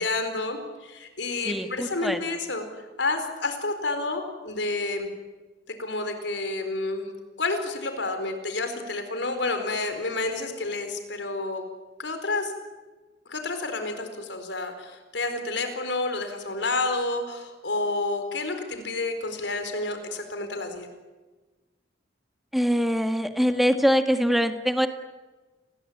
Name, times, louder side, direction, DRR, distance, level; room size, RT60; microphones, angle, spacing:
voice 1, 0.0-2.7 3.0-5.1 5.8-7.1 7.4-11.6 12.0-12.5 13.3-20.9, left 3 dB, 85° left, 7 dB, 4.5 m, -29 dB
voice 2, 1.5-2.2 22.5-24.9, equal, ahead, 7 dB, 1.9 m, -23 dB
29.5 x 21.5 x 8.8 m, 1.2 s
head